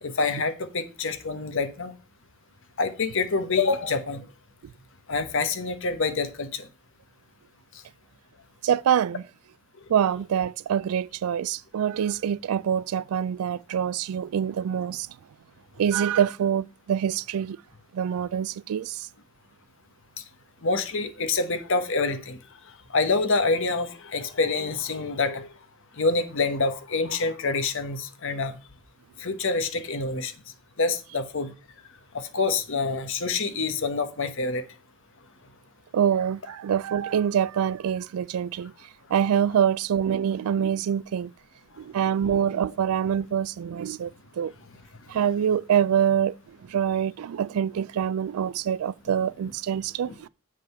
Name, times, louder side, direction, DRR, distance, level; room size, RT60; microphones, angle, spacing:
voice 1, 0.0-1.9 2.8-4.2 5.1-6.7 20.6-22.4 22.9-25.5 26.0-28.6 29.2-30.3 30.8-31.5 32.1-34.6 50.0-50.3, left 3 dB, 60° left, 1.1 m, -26 dB
voice 2, 8.6-9.2 9.9-15.1 15.8-17.6 17.9-18.9 35.9-38.7 39.1-41.3 41.8-44.1 44.4-44.5 45.1-46.3 46.7-50.1, right 8 dB, 80° right, 0.3 m, -25 dB
7.7 x 5.0 x 5.5 m
head